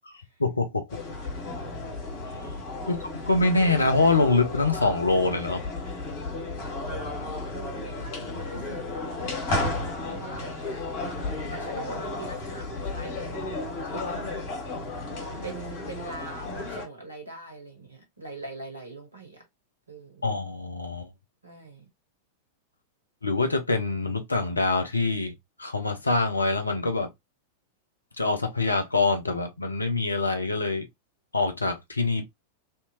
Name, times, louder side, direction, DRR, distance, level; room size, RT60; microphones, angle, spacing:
voice 1, 0.4-1.0 2.9-5.6 20.2-21.1 23.2-25.3 25.6-27.1 28.2-30.9 31.3-32.2, left 3 dB, 80° left, 0.8 m, -25 dB
sound 1, 0.9-16.9, left 2 dB, 50° left, 1.8 m, -33 dB
voice 2, 7.1-8.8 10.0-10.9 11.2-14.2 15.4-19.4 19.9-20.3 21.4-21.9, right 3 dB, 80° right, 1.4 m, -42 dB
3.3 x 2.8 x 3.0 m
figure-of-eight pair, 90°, 0 cm